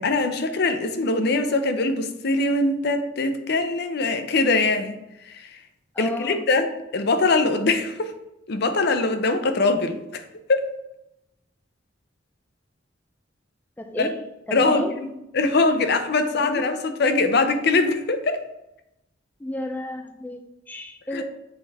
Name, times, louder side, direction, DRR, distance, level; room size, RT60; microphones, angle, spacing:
voice 1, 0.0-5.0 5.3-5.5 6.0-6.7 6.9-8.1 8.5-10.2 10.5-10.7 14.0-14.1 14.5-15.1 15.3-18.4 21.1-21.2, left 3 dB, 60° left, 8 dB, 0.6 m, -22 dB
voice 2, 5.9-6.4 13.8-14.9 16.4-16.7 19.4-21.2, left 1 dB, 10° left, 5 dB, 0.3 m, -33 dB
6.8 x 4.1 x 3.4 m, 0.91 s
head